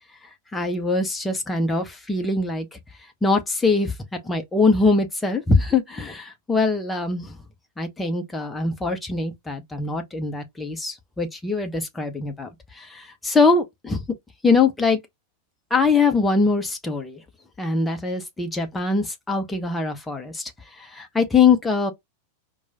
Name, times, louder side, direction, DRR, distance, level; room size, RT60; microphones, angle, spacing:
voice 1, 0.5-2.8 3.2-3.9 4.2-7.4 7.8-12.5 12.7-14.0 14.4-15.0 15.7-17.2 17.6-20.5 20.8-21.9, left 4 dB, 10° left, 0.8 m, -22 dB
4.5 x 2.3 x 2.8 m
figure-of-eight pair, 90°, 0 cm